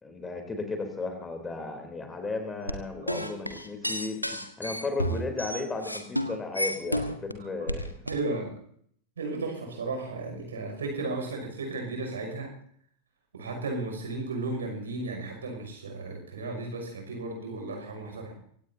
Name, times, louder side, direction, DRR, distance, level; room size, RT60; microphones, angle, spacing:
voice 1, 0.0-7.9, left 3 dB, 15° left, 5 dB, 3.4 m, -35 dB
sound 1, 2.7-7.3 7.7-8.2, equal, 90° left, 1.3 m, -31 dB
voice 2, 8.0-8.6 9.2-12.5 13.3-18.3, right 3 dB, 70° right, 3 dB, 6.1 m, -34 dB
25.0 x 17.5 x 2.8 m, 0.63 s
figure-of-eight pair, 90°, 0 cm